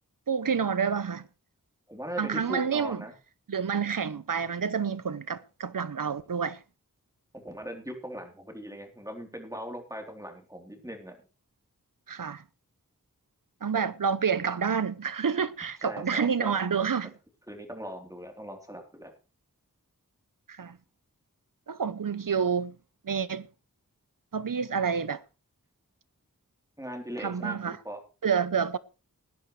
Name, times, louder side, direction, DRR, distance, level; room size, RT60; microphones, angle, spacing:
voice 1, 0.3-1.3 2.2-3.0 3.5-6.6 12.1-12.4 13.6-17.1 20.5-20.8 21.7-22.8 23.0-23.5 24.3-25.2 27.2-27.8 28.2-28.8, right 6 dB, 70° right, 0.8 m, -28 dB
voice 2, 1.9-3.1 7.3-11.2 15.8-16.9 17.5-19.1 26.8-28.0, equal, 10° right, 3.6 m, -40 dB
19.5 x 10.5 x 3.3 m
wide cardioid pair, 50°, 34 cm